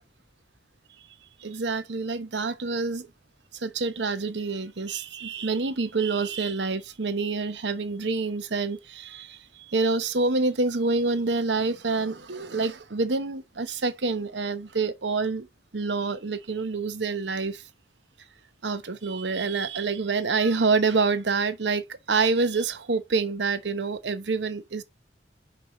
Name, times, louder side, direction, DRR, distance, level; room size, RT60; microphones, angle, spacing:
voice 1, 1.4-3.1 3.5-15.5 15.7-17.6 18.6-24.8, right 4 dB, 75° right, 0.9 m, -27 dB
5.3 x 4.8 x 6.2 m
head